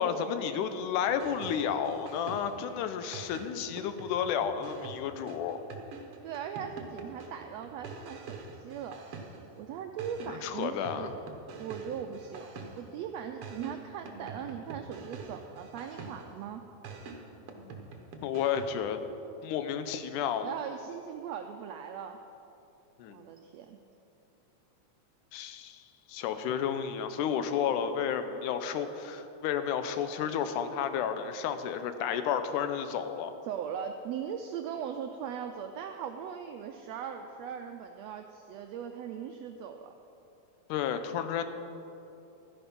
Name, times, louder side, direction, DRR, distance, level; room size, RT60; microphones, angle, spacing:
voice 1, 0.0-5.6 10.3-11.1 18.2-19.0 19.4-20.5 23.0-23.2 25.3-33.3 40.7-41.5, left 8 dB, 90° left, 9 dB, 2.2 m, -32 dB
sound 1, 1.1-2.7 3.1-9.6 10.0-13.0 13.4-16.4 16.8-18.9, right 4 dB, 60° right, 1.6 m, -45 dB
voice 2, 6.2-9.0 9.6-11.2 11.5-12.5 12.8-16.6 20.4-22.2 23.1-23.8 33.5-39.9, right 8 dB, 90° right, 5 dB, 1.5 m, -39 dB
13.0 x 10.0 x 5.3 m, 2.9 s
omnidirectional pair, 3.6 m